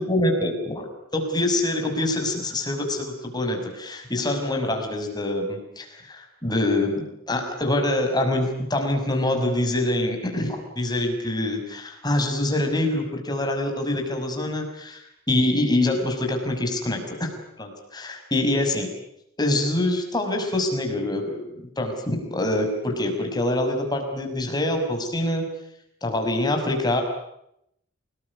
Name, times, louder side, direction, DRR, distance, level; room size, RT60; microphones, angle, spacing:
voice 1, 0.0-17.3 17.6-18.9 19.4-25.5 26.0-27.0, left 1 dB, 20° left, 3 dB, 6.0 m, -25 dB
29.0 x 20.0 x 9.7 m, 0.78 s
head